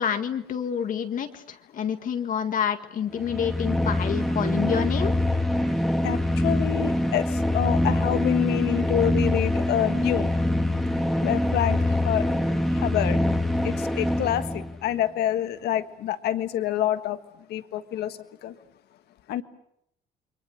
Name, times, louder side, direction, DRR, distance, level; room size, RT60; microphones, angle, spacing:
voice 1, 0.0-5.1, left 8 dB, 50° left, 1.9 m, -28 dB
sound 1, 3.1-14.8, left 1 dB, ahead, 1.8 m, -24 dB
voice 2, 6.0-10.3 11.2-12.3 12.7-13.2 13.6-17.2 17.5-18.5 19.3-19.4, left 11 dB, 75° left, 1.6 m, -27 dB
29.0 x 23.0 x 6.5 m
cardioid pair, 110°, 17 cm